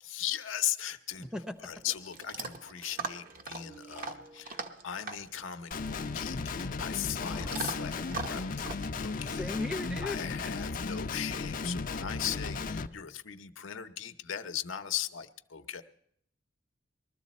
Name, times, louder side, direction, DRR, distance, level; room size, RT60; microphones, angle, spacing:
voice 1, 0.0-1.3 1.6-9.6 10.0-15.8, left 10 dB, 85° left, 8 dB, 0.7 m, -38 dB
Chewing mastication / Dog, 1.1-10.2, right 4 dB, 45° right, 0.9 m, -43 dB
Guitar, 5.7-12.9, left 4 dB, 45° left, 0.5 m, -35 dB
voice 2, 7.3-8.5 9.3-10.2, left 2 dB, 5° right, 7 dB, 0.7 m, -39 dB
20.5 x 13.0 x 4.2 m, 0.69 s
head